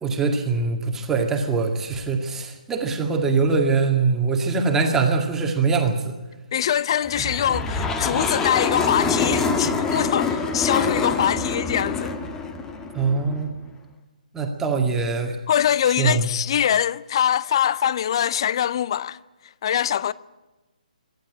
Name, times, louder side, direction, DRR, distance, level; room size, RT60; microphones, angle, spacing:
voice 1, 0.0-6.1 12.9-13.5 14.3-15.4 15.8-16.3, right 4 dB, 10° right, 2.1 m, -22 dB
voice 2, 6.5-12.2 15.5-19.2 19.6-20.1, left 9 dB, 35° left, 0.6 m, -23 dB
sound 1, 7.1-13.5, left 4 dB, 10° left, 1.2 m, -25 dB
24.5 x 12.0 x 10.0 m
figure-of-eight pair, 140°, 5 cm